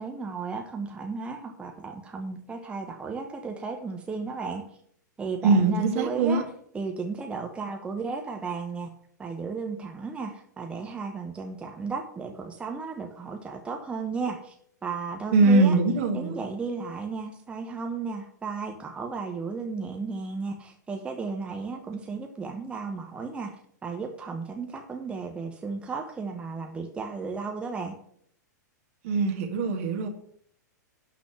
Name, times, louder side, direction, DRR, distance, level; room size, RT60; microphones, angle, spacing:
voice 1, 0.0-4.7 5.2-6.5 6.7-8.9 9.2-14.5 14.8-15.8 16.1-23.5 23.8-27.9, right 4 dB, 10° right, 3 dB, 1.0 m, -34 dB
voice 2, 5.4-6.4 15.3-16.4 29.0-30.1, right 3 dB, 45° right, 4 dB, 1.8 m, -22 dB
11.5 x 4.1 x 7.8 m, 0.65 s
figure-of-eight pair, 100°, 10 cm